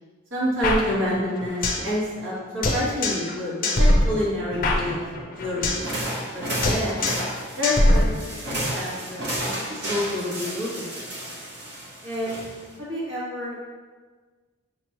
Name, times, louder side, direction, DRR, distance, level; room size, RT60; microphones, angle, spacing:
voice 1, 0.3-5.0 5.4-5.7 6.3-7.1 7.6-8.2 8.5-11.2 12.0-12.5 12.8-13.6, left 1 dB, 70° right, -6 dB, 1.3 m, -28 dB
sound 1, 0.6-1.9 2.2-2.3 2.6-3.3 3.6-5.9 6.2-6.4 6.6-7.3 7.6-8.6, left 1 dB, 40° left, 0.5 m, -22 dB
sound 2, 5.7-12.8, right 1 dB, 55° right, 0.8 m, -32 dB
5.9 x 3.0 x 2.9 m, 1.4 s
head